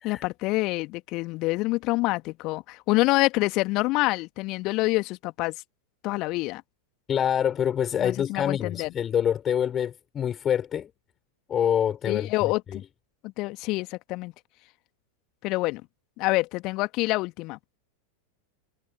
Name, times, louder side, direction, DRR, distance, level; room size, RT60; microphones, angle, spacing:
voice 1, 0.0-5.5 6.0-6.6 8.0-8.9 12.1-12.8 13.2-14.3 15.4-15.8 16.2-17.6, left 22 dB, 40° left, 1.9 m, -26 dB
voice 2, 7.1-10.9 11.5-12.8, left 9 dB, 25° left, 4.1 m, -26 dB
figure-of-eight pair, 90°, 0 cm